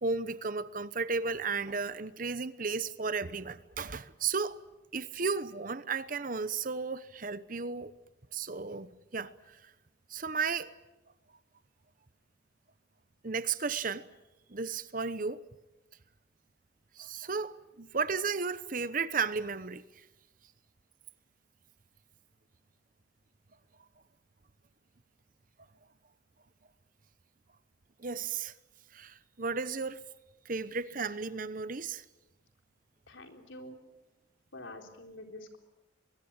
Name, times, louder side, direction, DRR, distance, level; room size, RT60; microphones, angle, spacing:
voice 1, 0.0-4.6 4.9-7.9 8.3-8.9 9.1-9.6 10.1-10.7 13.2-14.1 14.5-15.4 17.0-19.8 28.0-28.5 28.9-30.0 30.4-32.0, right 4 dB, 45° right, 0.9 m, -34 dB
voice 2, 33.1-33.8 34.5-35.6, left 1 dB, 80° left, 3.9 m, -47 dB
23.5 x 21.5 x 8.9 m
head